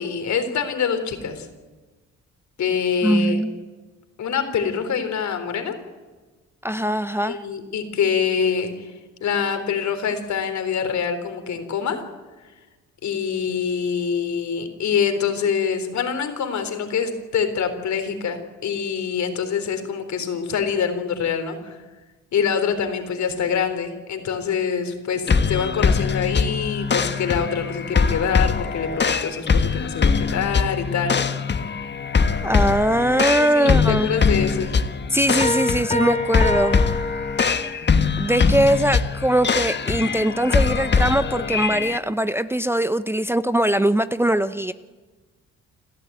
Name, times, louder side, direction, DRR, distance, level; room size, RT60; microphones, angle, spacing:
voice 1, 0.0-1.5 2.6-3.4 4.2-5.7 7.2-8.9 9.2-12.0 13.0-21.8 22.3-31.3 33.3-34.8, left 7 dB, 65° left, 8 dB, 3.7 m, -25 dB
voice 2, 3.0-3.6 6.6-7.4 32.4-34.1 35.1-36.8 38.2-44.7, right 1 dB, 10° right, 11 dB, 0.7 m, -21 dB
sound 1, 25.3-42.0, left 5 dB, 35° left, 1.4 m, -22 dB
sound 2, 35.4-37.9, left 2 dB, 20° left, 1.4 m, -26 dB
29.0 x 13.0 x 9.3 m, 1.3 s
cardioid pair, 90°, 30 cm